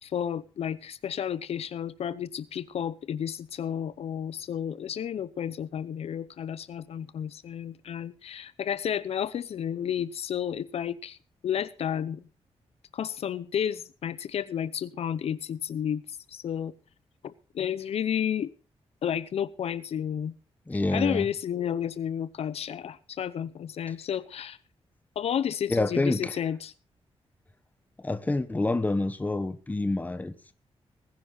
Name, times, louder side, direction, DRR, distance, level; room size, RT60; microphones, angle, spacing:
voice 1, 0.0-11.2 11.4-12.2 12.9-16.0 16.3-16.7 17.2-18.5 19.0-20.3 20.9-24.6 25.2-26.7, left 9 dB, 70° left, 0.7 m, -31 dB
voice 2, 20.7-21.3 25.7-26.3 28.0-30.5, left 2 dB, 15° left, 1.2 m, -27 dB
20.0 x 10.5 x 4.0 m
wide cardioid pair, 145°, 11 cm